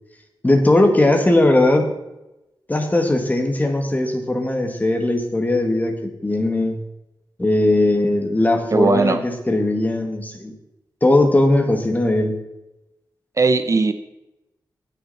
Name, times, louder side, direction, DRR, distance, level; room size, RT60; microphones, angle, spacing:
voice 1, 0.4-1.9 2.7-6.8 7.4-10.5 11.0-12.4, left 2 dB, 20° left, 4 dB, 1.7 m, -18 dB
voice 2, 8.7-9.2 13.4-13.9, right 3 dB, 40° right, 10 dB, 0.6 m, -17 dB
17.5 x 6.7 x 4.1 m, 0.93 s
wide cardioid pair, 115°, 8 cm